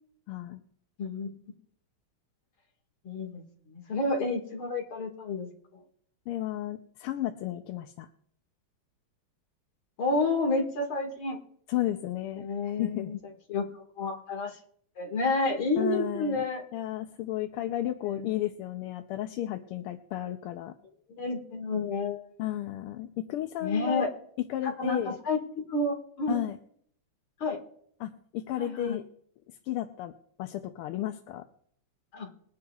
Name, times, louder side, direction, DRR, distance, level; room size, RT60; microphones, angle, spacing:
voice 1, 0.3-0.6 6.3-8.1 11.7-13.2 15.8-16.4 16.7-20.7 22.4-24.1 24.5-25.2 26.3-26.6 28.0-29.0 29.5-30.1 30.4-31.5, left 13 dB, 85° left, 6 dB, 1.6 m, -33 dB
voice 2, 3.0-5.5 10.0-11.4 12.4-13.2 13.5-14.5 15.0-16.6 18.1-18.3 21.1-22.2 23.6-24.1 24.6-26.4 27.4-27.6 28.6-29.0 32.1-32.3, left 2 dB, 70° left, 1 dB, 2.7 m, -30 dB
21.5 x 10.5 x 2.4 m, 0.65 s
omnidirectional pair, 2.4 m